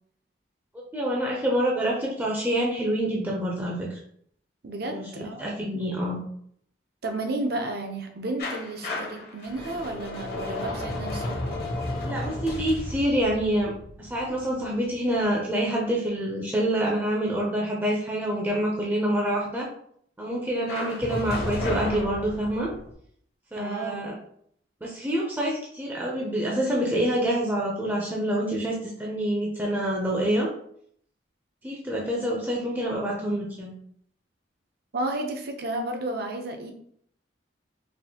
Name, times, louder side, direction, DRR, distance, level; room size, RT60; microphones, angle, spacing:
voice 1, 0.9-4.0 4.8-6.2 12.0-19.7 20.2-22.7 23.5-24.1 24.8-30.5 31.6-33.7, right 1 dB, 10° right, -3 dB, 0.5 m, -27 dB
voice 2, 4.6-5.9 7.0-11.4 23.5-24.1 34.9-36.7, right 2 dB, 55° right, 4 dB, 0.6 m, -32 dB
sound 1, 8.4-15.2 20.7-22.9, left 1 dB, 55° left, 0.8 m, -33 dB
4.3 x 2.5 x 2.8 m, 0.66 s
head